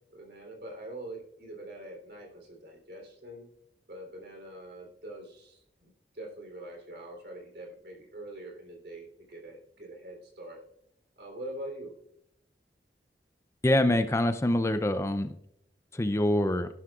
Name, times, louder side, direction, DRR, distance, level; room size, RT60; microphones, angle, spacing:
voice 1, 0.1-3.5 3.9-10.6 11.2-11.9, right 1 dB, 65° right, 1 dB, 3.4 m, -44 dB
voice 2, 13.6-15.3 15.9-16.7, left 1 dB, 15° left, 9 dB, 0.4 m, -25 dB
15.0 x 11.5 x 2.4 m, 0.77 s
head